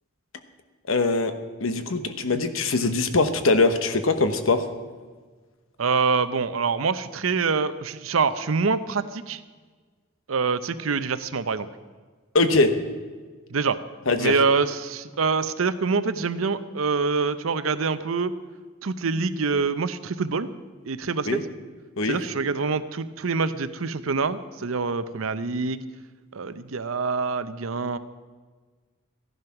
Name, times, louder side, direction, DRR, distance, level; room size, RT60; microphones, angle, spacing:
voice 1, 0.9-1.3 1.6-4.6 12.3-12.7 14.1-14.4 21.3-21.4 22.0-22.2, left 3 dB, 75° left, 9 dB, 1.1 m, -22 dB
voice 2, 5.8-9.4 10.3-11.7 13.5-13.8 14.2-18.3 18.8-20.5 20.9-21.4 22.1-25.8 26.3-28.0, right 4 dB, 75° right, 13 dB, 0.7 m, -25 dB
15.0 x 11.0 x 5.9 m, 1.4 s
head